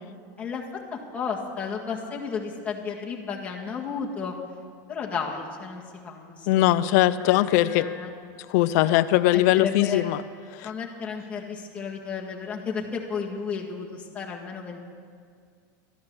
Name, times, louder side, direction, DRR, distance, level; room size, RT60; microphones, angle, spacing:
voice 1, 0.4-4.3 4.9-6.9 7.2-8.1 8.8-9.0 9.6-10.1 10.6-14.8, left 5 dB, 15° left, -3 dB, 1.8 m, -33 dB
voice 2, 6.5-7.9 8.5-10.2 10.5-10.7, left 15 dB, 55° left, 12 dB, 0.5 m, -21 dB
13.0 x 11.0 x 7.1 m, 2.1 s
supercardioid pair, 155°, 10 cm